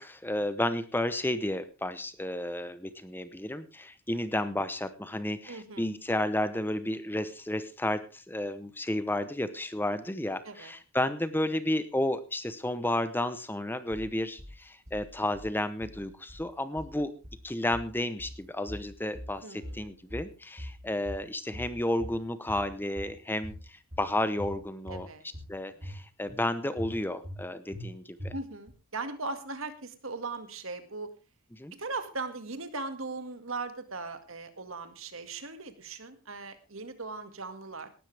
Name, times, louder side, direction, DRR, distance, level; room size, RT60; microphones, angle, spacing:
voice 1, 0.0-17.1 17.4-25.1 25.5-28.3 31.5-31.7, left 1 dB, 10° left, 13 dB, 0.8 m, -32 dB
voice 2, 5.5-5.9 10.4-10.7 19.4-20.0 24.9-25.3 25.7-25.9 28.3-31.1 31.7-37.9, right 3 dB, 65° right, 9 dB, 2.0 m, -39 dB
sound 1, 13.9-14.5 14.9-15.5 15.8-16.5 16.8-17.5 17.7-18.4 18.7-19.4 19.6-20.3 20.6-21.3 21.5-22.2 22.5-23.1 23.4-24.1 24.4-25.0 25.3-26.0 26.3-26.4 26.8-27.4 27.7-27.9 28.2-28.7, equal, 35° right, 2.9 m, -42 dB
18.5 x 12.5 x 3.4 m, 0.32 s
head